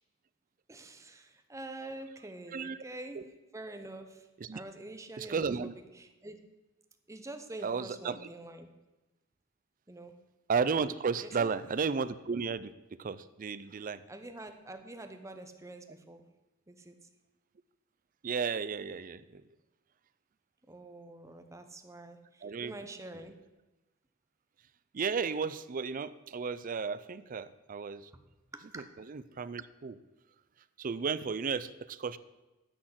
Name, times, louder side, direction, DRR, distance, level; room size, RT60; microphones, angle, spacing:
voice 1, 0.7-6.4 7.1-8.7 9.9-10.1 11.2-11.5 14.1-16.2 16.7-17.1 20.7-23.3 28.1-28.2 28.5-28.8, right 2 dB, 15° right, 7 dB, 0.9 m, -46 dB
voice 2, 5.2-5.7 7.6-8.2 10.5-12.7 13.0-14.0 18.2-19.4 22.4-22.7 24.9-28.1 29.1-30.0 30.8-32.2, right 5 dB, 45° right, 15 dB, 0.5 m, -33 dB
10.0 x 6.3 x 8.0 m, 1.1 s
head